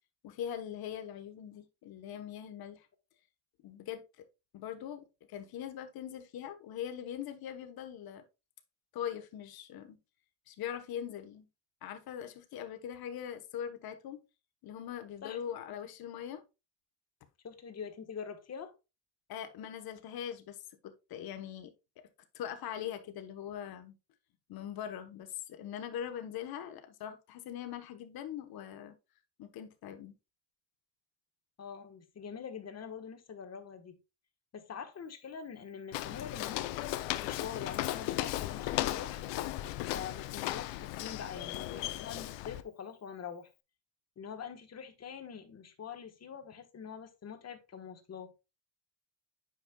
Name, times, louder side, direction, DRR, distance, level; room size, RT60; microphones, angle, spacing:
voice 1, 0.2-2.9 3.6-4.0 4.5-8.2 8.9-10.0 10.5-11.5 11.8-14.2 14.6-16.4 19.3-20.6 20.8-21.7 22.0-22.1 22.3-24.0 24.5-28.9 29.4-30.1, left 9 dB, 55° left, 1.1 m, -41 dB
voice 2, 15.2-15.6 17.4-18.7 31.6-34.0 34.5-36.6 37.2-39.2 39.8-43.5 44.2-48.3, left 7 dB, 35° left, 1.3 m, -44 dB
Walk footsteps, 35.9-42.6, left 15 dB, 85° left, 0.7 m, -36 dB
9.1 x 5.4 x 2.3 m
cardioid pair, 105°, 43 cm